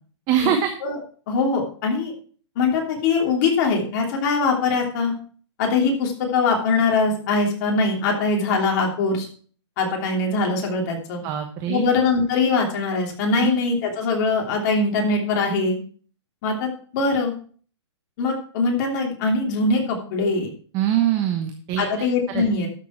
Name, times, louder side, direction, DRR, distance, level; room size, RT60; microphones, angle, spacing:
voice 1, 0.3-0.7 11.2-12.0 13.4-13.5 20.7-21.8 22.3-22.4, right 10 dB, 25° right, 5 dB, 1.1 m, -23 dB
voice 2, 1.3-2.1 2.5-5.1 5.6-9.3 9.8-11.2 11.7-15.8 16.4-16.7 16.9-17.3 18.2-20.5 21.8-22.7, left 4 dB, 40° left, 1 dB, 3.0 m, -22 dB
12.5 x 6.9 x 4.4 m, 0.44 s
hypercardioid pair, 155°, 15 cm